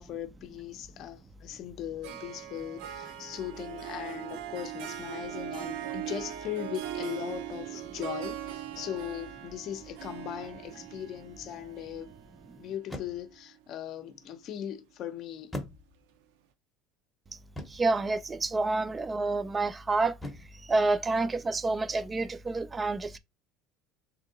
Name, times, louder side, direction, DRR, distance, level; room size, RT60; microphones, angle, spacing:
voice 1, 0.0-12.1 12.6-15.6, left 11 dB, 40° left, 0.6 m, -39 dB
Harp, 2.0-13.5, right 11 dB, 80° right, 0.6 m, -40 dB
sound 1, 10.4-10.8 12.8-13.4 15.5-16.2 17.6-18.0 20.2-20.7, left 1 dB, 5° left, 0.7 m, -41 dB
voice 2, 17.7-20.2 20.6-23.2, right 3 dB, 15° right, 0.3 m, -28 dB
3.6 x 2.8 x 3.8 m
cardioid pair, 165°, 0 cm